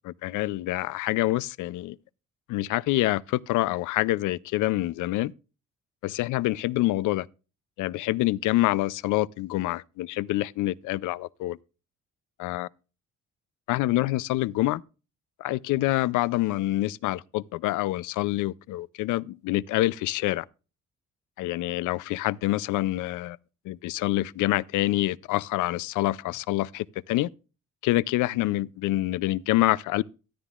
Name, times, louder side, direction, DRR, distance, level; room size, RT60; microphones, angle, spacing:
voice 1, 0.0-2.0 2.5-5.3 6.0-7.3 7.8-11.6 12.4-12.7 13.7-14.8 15.4-20.5 21.4-23.4 23.7-27.3 27.8-30.0, left 17 dB, 85° left, 0.5 m, -26 dB
13.5 x 11.0 x 2.4 m
cardioid pair, 90°, 30 cm